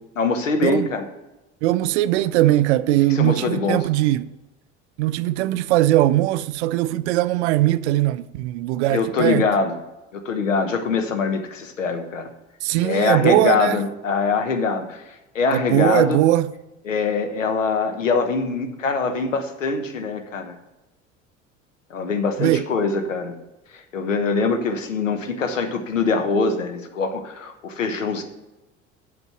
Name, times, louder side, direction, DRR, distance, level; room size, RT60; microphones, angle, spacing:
voice 1, 0.2-1.1 3.1-3.8 8.9-9.8 10.1-12.3 12.8-16.2 16.8-20.6 21.9-23.3 23.7-28.2, left 4 dB, 80° left, 1.2 m, -23 dB
voice 2, 1.6-4.3 5.0-9.5 12.6-13.8 15.5-16.5 22.4-22.6, right 15 dB, 65° right, 0.5 m, -20 dB
8.0 x 7.4 x 5.8 m
figure-of-eight pair, 65°, 38 cm